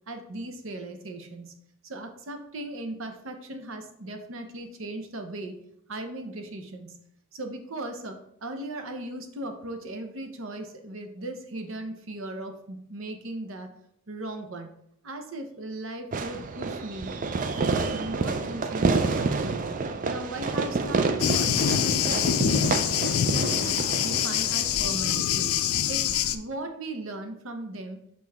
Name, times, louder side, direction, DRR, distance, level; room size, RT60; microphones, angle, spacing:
voice 1, 0.1-1.5 1.8-5.6 5.9-6.9 7.3-13.7 14.1-14.7 15.0-17.2 17.6-19.6 20.0-22.8 23.2-25.5 25.9-28.0, right 2 dB, 65° right, 6 dB, 0.8 m, -37 dB
Fireworks, 16.1-25.1, right 4 dB, 40° right, 0.4 m, -29 dB
Thunder, 21.2-26.4, left 9 dB, 90° left, 0.4 m, -25 dB
6.6 x 4.0 x 3.5 m, 0.73 s
head